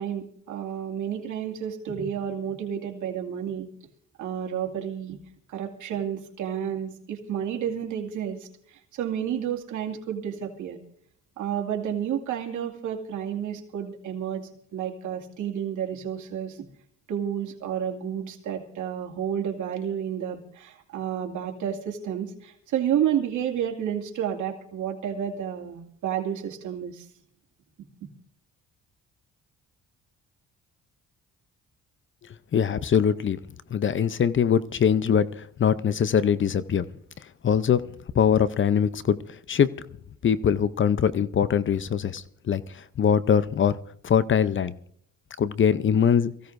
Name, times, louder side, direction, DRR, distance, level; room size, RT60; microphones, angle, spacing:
voice 1, 0.0-3.7 4.2-5.2 5.5-10.8 11.4-16.7 17.1-27.0, right 9 dB, 75° right, 1 dB, 2.4 m, -31 dB
voice 2, 32.5-33.4 33.7-35.3 35.6-36.8 37.4-37.8 38.1-39.2 39.5-39.7 40.2-43.7 44.0-44.7 45.4-46.3, left 8 dB, 40° left, 16 dB, 0.7 m, -22 dB
23.5 x 15.5 x 2.6 m, 0.63 s
cardioid pair, 90°, 30 cm